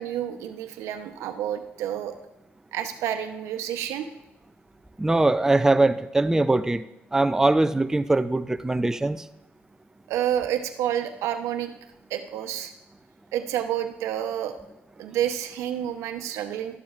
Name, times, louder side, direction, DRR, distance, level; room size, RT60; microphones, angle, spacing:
voice 1, 0.0-2.1 2.7-4.1 10.1-11.7 12.1-12.7 13.3-14.6 15.0-16.8, right 10 dB, 80° right, 8 dB, 0.8 m, -29 dB
voice 2, 5.0-6.8 7.1-9.2, right 2 dB, 10° right, 11 dB, 0.4 m, -21 dB
12.5 x 11.5 x 2.5 m, 0.92 s
supercardioid pair, 65°, 5 cm